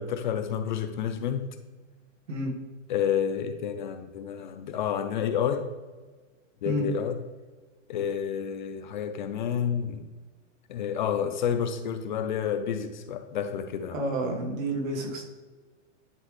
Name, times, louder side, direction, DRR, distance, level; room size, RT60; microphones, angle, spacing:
voice 1, 0.0-1.5 2.9-5.7 6.6-7.2 7.9-10.1 10.7-14.0, left 8 dB, 40° left, 9 dB, 0.5 m, -29 dB
voice 2, 13.9-15.2, right 1 dB, 85° right, 1 dB, 2.1 m, -29 dB
10.5 x 3.8 x 3.2 m, 1.3 s
hypercardioid pair, 165°, 39 cm